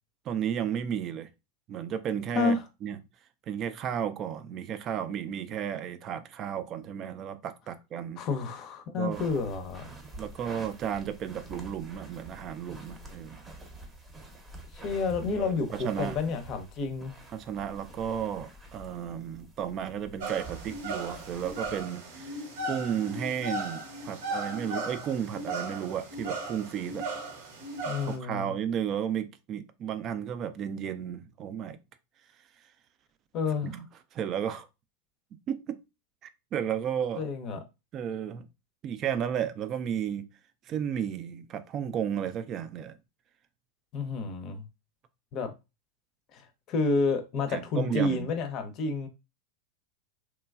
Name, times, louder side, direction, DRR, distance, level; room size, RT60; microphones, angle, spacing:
voice 1, 0.3-1.3 1.7-3.0 3.5-8.2 9.0-9.3 10.2-13.4 15.3-16.2 17.3-27.0 28.1-31.8 33.6-33.9 34.1-34.7 35.5-35.8 36.5-37.2 37.9-38.5 38.8-40.3 40.7-42.9 47.5-48.3, right 9 dB, 40° right, 0.4 m, -33 dB
voice 2, 8.2-9.9 14.7-17.1 27.8-28.5 33.3-33.7 37.2-37.6 43.9-44.7 45.3-45.5 46.3-49.1, left 3 dB, 45° left, 0.6 m, -30 dB
sound 1, 9.1-21.8, right 2 dB, 20° right, 0.7 m, -48 dB
sound 2, 20.2-28.2, right 2 dB, 65° right, 0.8 m, -37 dB
3.0 x 2.3 x 2.3 m
hypercardioid pair, 95°, 0 cm